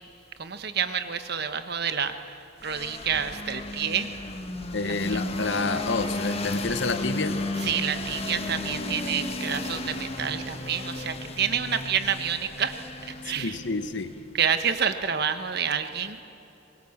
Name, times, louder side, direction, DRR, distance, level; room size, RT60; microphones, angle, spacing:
voice 1, 0.4-2.4 2.6-4.1 4.8-5.2 7.6-12.8 13.0-13.6 14.3-16.2, right 7 dB, 55° right, 9 dB, 1.2 m, -28 dB
sound 1, 2.6-14.4, left 2 dB, 30° left, 1.4 m, -34 dB
voice 2, 4.7-7.4 13.4-14.1, left 3 dB, 65° left, 11 dB, 1.1 m, -29 dB
24.5 x 20.5 x 7.3 m, 2.9 s
head